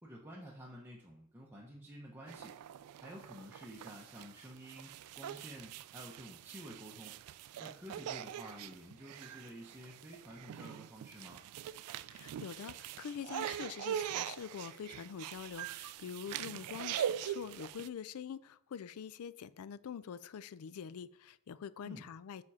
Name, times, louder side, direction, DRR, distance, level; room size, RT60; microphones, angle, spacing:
voice 1, 0.0-2.6 3.0-7.2 7.6-11.4 21.8-22.1, equal, 10° right, 0.7 m, -51 dB
sound 1, 2.3-17.9, right 10 dB, 85° right, 0.3 m, -43 dB
voice 2, 12.1-22.4, left 7 dB, 75° left, 0.4 m, -45 dB
7.3 x 4.3 x 4.8 m
head